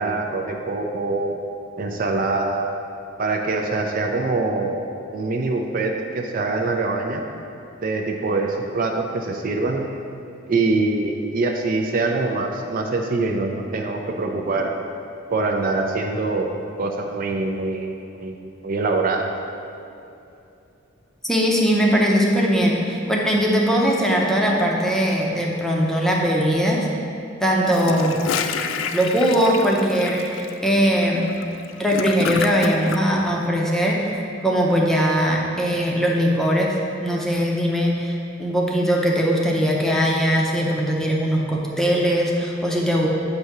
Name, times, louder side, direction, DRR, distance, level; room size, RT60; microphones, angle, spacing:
voice 1, 0.0-1.3 1.8-2.8 3.2-4.9 5.1-7.2 7.8-9.8 10.5-14.7 15.3-16.5 16.8-17.9 18.2-18.4 18.6-19.3, right 3 dB, 45° right, 2 dB, 0.4 m, -24 dB
voice 2, 21.2-26.9 27.4-28.2 28.9-31.3 31.8-34.1 34.4-36.7 37.0-43.1, equal, ahead, -2 dB, 0.6 m, -20 dB
Gurgling / Toilet flush, 27.6-33.0, left 6 dB, 65° left, 0.3 m, -29 dB
7.8 x 2.7 x 5.8 m, 2.7 s
head